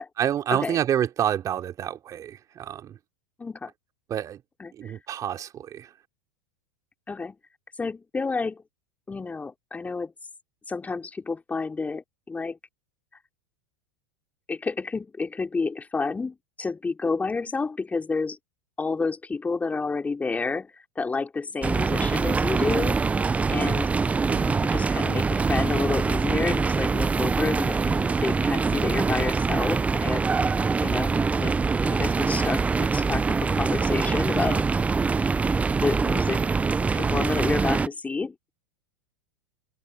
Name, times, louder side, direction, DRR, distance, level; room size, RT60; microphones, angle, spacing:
voice 1, 0.2-3.0 4.1-4.4 4.7-5.9 24.3-24.7, right 10 dB, 35° right, 3.2 m, -28 dB
voice 2, 3.4-3.7 4.6-4.9 7.1-7.4 7.8-8.6 9.1-10.1 10.7-12.6 14.5-18.4 18.8-23.0 23.5-23.9 24.5-30.3 30.8-31.1 31.4-31.6 31.8-34.6 35.8-36.4 36.9-38.3, left 4 dB, 15° left, 3.0 m, -29 dB
sound 1, 21.6-37.9, right 4 dB, 15° right, 0.5 m, -24 dB
hypercardioid pair, 90°, 10 cm